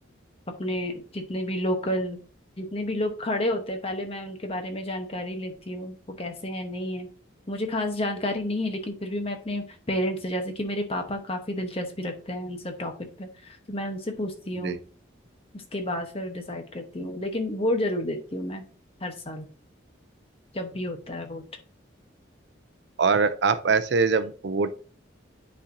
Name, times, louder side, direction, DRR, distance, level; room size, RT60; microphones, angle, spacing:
voice 1, 0.6-2.2 2.6-7.1 7.5-12.9 13.2-14.8 15.5-18.7 19.0-19.5 20.5-21.4, left 1 dB, 30° left, 5 dB, 1.0 m, -30 dB
voice 2, 23.0-24.7, right 4 dB, 60° right, 13 dB, 0.5 m, -23 dB
9.9 x 4.3 x 2.7 m, 0.38 s
head